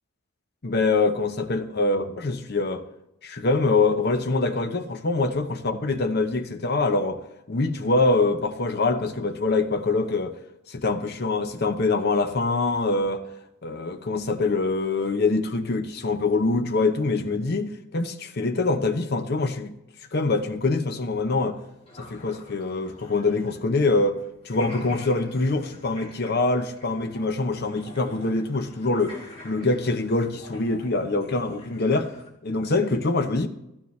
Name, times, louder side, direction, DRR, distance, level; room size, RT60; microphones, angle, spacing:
voice 1, 0.6-2.8 3.2-7.2 7.5-10.3 10.7-13.2 13.6-19.7 20.1-21.6 22.0-24.2 24.4-29.2 29.4-32.1 32.4-33.5, left 3 dB, 45° left, 0.7 m, -24 dB
sound 1, 21.2-24.2 24.4-32.3, left 1 dB, 30° left, 1.7 m, -46 dB
13.0 x 9.5 x 3.2 m
head